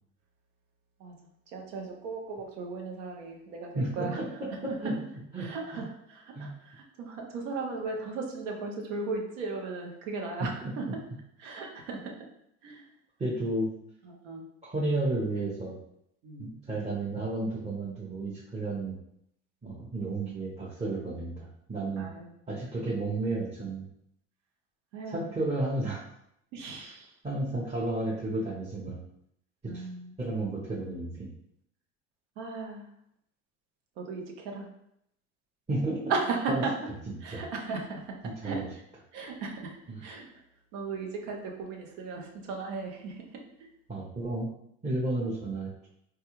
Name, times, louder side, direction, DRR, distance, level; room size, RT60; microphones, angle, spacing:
voice 1, 1.5-4.4 4.7-4.9 5.4-10.8 11.4-12.1 12.6-12.9 14.0-14.5 16.2-16.5 22.0-22.3 24.9-25.3 26.5-27.1 29.6-30.1 32.4-32.9 34.0-34.7 36.1-36.7 37.2-38.2 38.4-38.6 39.1-40.3 40.7-43.7, right 4 dB, 80° right, 1 dB, 0.8 m, -36 dB
voice 2, 3.7-4.9 5.3-5.5 5.7-5.8 6.4-6.5 13.2-13.7 14.6-15.7 16.4-19.0 19.6-22.1 22.5-23.9 25.1-26.0 27.2-29.0 29.7-29.9 30.2-31.3 35.7-36.0 37.1-37.4 38.4-38.6 39.9-40.0 43.9-44.5 44.8-45.7, right 2 dB, 15° right, -7 dB, 0.7 m, -32 dB
3.6 x 2.2 x 3.0 m, 0.75 s
supercardioid pair, 80°, 36 cm